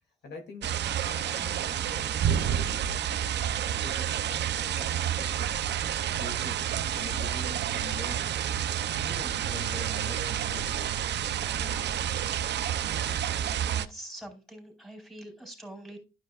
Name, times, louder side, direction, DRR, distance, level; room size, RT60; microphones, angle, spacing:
voice 1, 0.2-3.0 3.8-5.7 6.2-8.3 8.9-12.7, left 4 dB, 70° left, 2.6 m, -46 dB
sound 1, 0.6-13.9, right 10 dB, 75° right, 0.7 m, -29 dB
voice 2, 13.6-16.0, right 1 dB, ahead, 4.4 m, -44 dB
12.5 x 5.4 x 2.4 m
cardioid pair, 90°, 18 cm